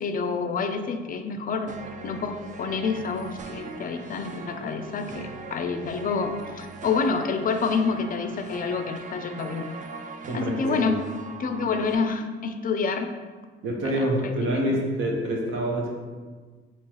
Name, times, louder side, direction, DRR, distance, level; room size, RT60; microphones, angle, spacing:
voice 1, 0.0-1.7 2.0-9.7 10.3-11.0 11.4-13.1 13.8-14.8, left 5 dB, 45° left, 7 dB, 0.4 m, -28 dB
sound 1, 1.7-12.0, right 4 dB, 40° right, 0.4 m, -41 dB
voice 2, 10.3-10.9 13.6-15.9, right 1 dB, 80° right, -1 dB, 0.9 m, -26 dB
4.5 x 2.9 x 2.9 m, 1.4 s
cardioid pair, 90°, 20 cm